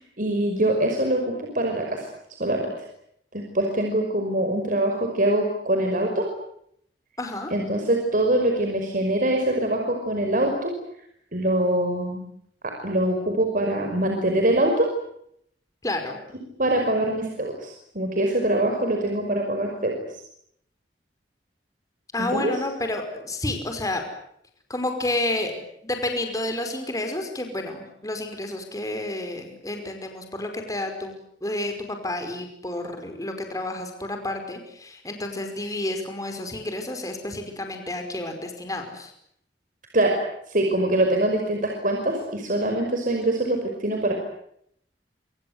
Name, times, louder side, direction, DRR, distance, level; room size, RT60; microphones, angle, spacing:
voice 1, 0.2-2.1 2.4-2.9 3.3-6.3 7.5-10.7 11.3-12.2 12.6-14.9 16.6-20.0 22.2-22.5 39.9-40.2 40.5-44.1, right 1 dB, 50° right, 2 dB, 5.5 m, -24 dB
voice 2, 7.2-7.5 15.8-16.2 22.1-24.0 24.7-31.1 31.4-39.1, left 1 dB, 20° left, 5 dB, 5.3 m, -30 dB
27.0 x 26.5 x 8.1 m, 0.72 s
head